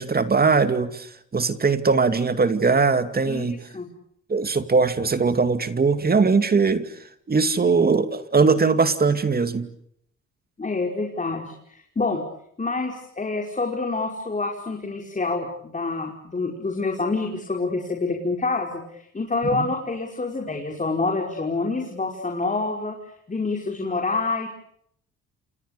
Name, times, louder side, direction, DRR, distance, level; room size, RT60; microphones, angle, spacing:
voice 1, 0.0-3.6 4.3-6.9 7.3-9.7 19.5-19.6, right 4 dB, 30° right, 10 dB, 2.5 m, -20 dB
voice 2, 3.2-3.9 10.6-12.2 12.6-23.0 23.3-24.5, left 3 dB, 25° left, 1 dB, 5.3 m, -27 dB
29.0 x 27.5 x 6.9 m, 0.71 s
cardioid pair, 90°, 30 cm